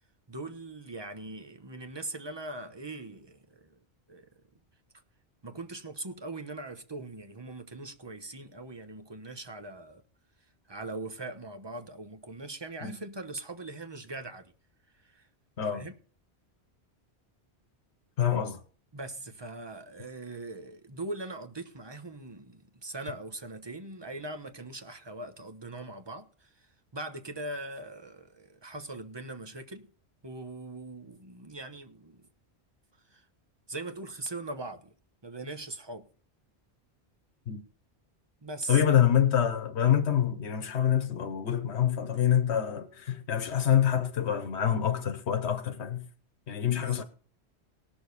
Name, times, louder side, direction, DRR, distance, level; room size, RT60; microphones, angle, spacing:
voice 1, 0.3-3.8 4.1-4.3 5.4-10.0 10.7-14.5 15.0-15.3 15.7-15.9 18.9-29.9 30.2-32.2 33.1-33.2 33.7-34.9 35.2-36.1 38.4-38.8 46.6-47.0, right 2 dB, 25° right, 1.0 m, -41 dB
voice 2, 18.2-18.6 37.5-37.6 38.7-46.1 46.5-47.0, left 9 dB, 85° left, 1.2 m, -26 dB
19.0 x 6.7 x 4.1 m
omnidirectional pair, 1.1 m